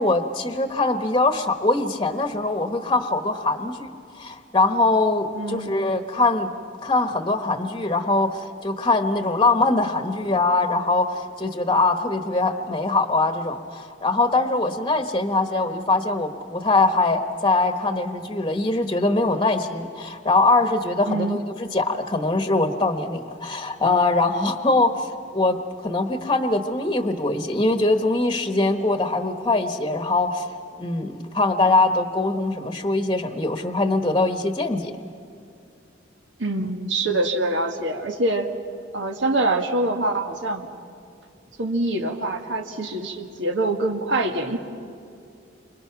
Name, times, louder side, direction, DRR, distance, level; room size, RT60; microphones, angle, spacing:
voice 1, 0.0-6.5 6.8-25.6 25.8-30.5 30.8-34.9, left 2 dB, 25° left, 6 dB, 1.1 m, -22 dB
voice 2, 5.4-5.7 21.1-21.4 36.4-38.5 38.9-40.7 41.6-44.6, right 2 dB, 80° right, 3 dB, 1.9 m, -25 dB
29.5 x 26.0 x 6.0 m, 2.4 s
head